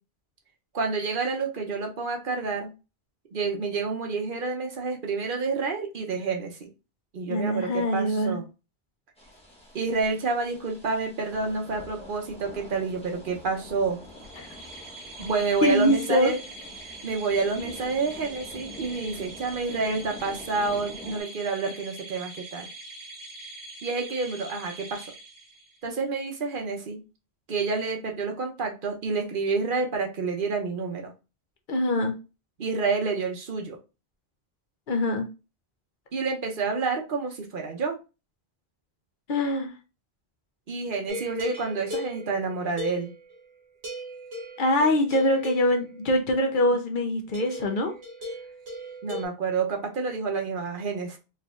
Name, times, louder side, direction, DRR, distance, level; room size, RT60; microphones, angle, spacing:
voice 1, 0.7-2.7 3.3-6.7 7.1-8.4 9.7-14.0 15.2-16.4 16.8-22.7 23.8-25.1 25.8-27.0 27.5-31.1 32.6-33.8 36.1-38.0 40.7-43.1 49.0-51.2, right 4 dB, 55° right, 2 dB, 0.9 m, -29 dB
voice 2, 7.3-8.4 14.4-14.5 15.6-16.3 31.7-32.1 34.9-35.3 39.3-39.7 44.6-47.9, left 1 dB, 55° left, 4 dB, 0.7 m, -23 dB
sound 1, 9.2-21.2, left 1 dB, 5° left, 0.9 m, -46 dB
sound 2, 14.0-25.9, right 2 dB, 25° right, 0.5 m, -43 dB
sound 3, 41.1-43.5 43.8-46.1 47.3-49.2, left 1 dB, 80° right, 1.5 m, -38 dB
4.3 x 2.6 x 2.4 m, 0.30 s
omnidirectional pair, 1.1 m